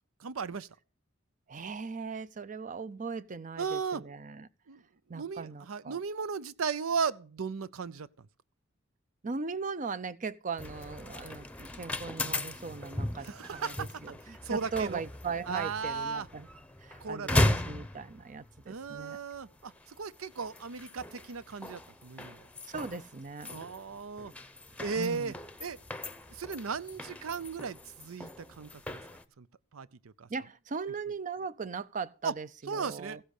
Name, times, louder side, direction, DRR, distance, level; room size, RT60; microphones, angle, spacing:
voice 1, 0.2-0.7 3.6-4.0 4.7-4.8 5.1-8.3 13.2-13.8 14.4-15.0 15.5-16.3 17.0-17.4 18.7-22.4 23.5-24.3 24.8-25.3 25.6-25.8 26.3-29.0 29.4-29.5 29.7-30.3 32.2-32.3 32.7-33.2, right 5 dB, 75° right, 0.6 m, -36 dB
voice 2, 1.5-4.5 5.1-6.0 9.2-16.5 16.8-19.2 22.6-23.5 25.0-25.3 30.3-33.2, right 5 dB, 35° right, 0.6 m, -39 dB
sound 1, 10.6-29.2, left 1 dB, 5° left, 0.8 m, -37 dB
15.5 x 7.7 x 6.5 m
head